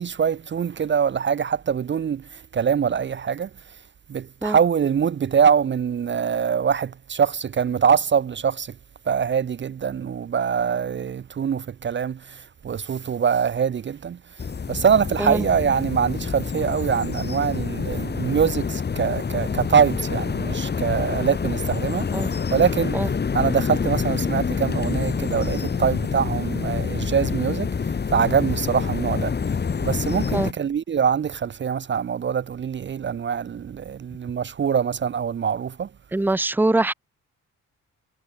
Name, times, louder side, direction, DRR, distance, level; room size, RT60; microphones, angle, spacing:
voice 1, 0.0-3.5 4.1-8.7 9.1-14.2 14.7-22.1 22.5-23.0 23.3-27.7 28.1-29.3 29.8-35.9, right 7 dB, 40° right, 0.8 m, -23 dB
sound 1, 14.4-30.5, left 5 dB, 35° left, 2.0 m, -27 dB
voice 2, 36.1-36.9, right 2 dB, 5° right, 0.9 m, -22 dB
cardioid pair, 90°, 30 cm